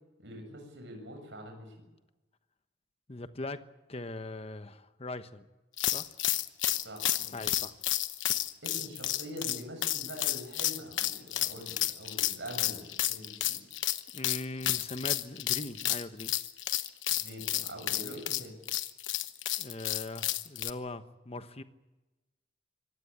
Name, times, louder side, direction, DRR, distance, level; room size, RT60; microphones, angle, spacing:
voice 1, 0.2-1.9 6.8-7.4 8.6-13.6 17.1-18.6, equal, 70° right, 3 dB, 7.3 m, -44 dB
voice 2, 3.1-3.6 3.9-5.5 5.9-6.1 7.3-7.7 14.1-16.3 19.6-21.6, left 2 dB, 30° left, 10 dB, 1.1 m, -40 dB
sound 1, 5.8-20.7, left 13 dB, 80° left, 1.1 m, -31 dB
24.5 x 18.5 x 8.7 m, 1.1 s
head